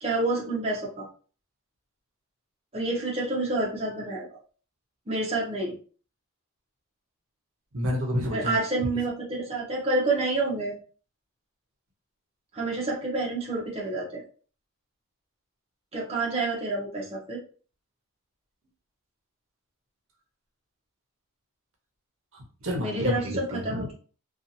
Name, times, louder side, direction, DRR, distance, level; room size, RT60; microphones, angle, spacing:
voice 1, 0.0-1.1 2.7-4.3 5.1-5.8 8.3-10.8 12.5-14.2 15.9-17.4 22.8-23.9, right 2 dB, 30° right, -3 dB, 0.7 m, -28 dB
voice 2, 7.7-8.6 22.3-23.9, left 1 dB, 65° right, 1 dB, 0.7 m, -30 dB
2.7 x 2.3 x 2.6 m, 0.39 s
head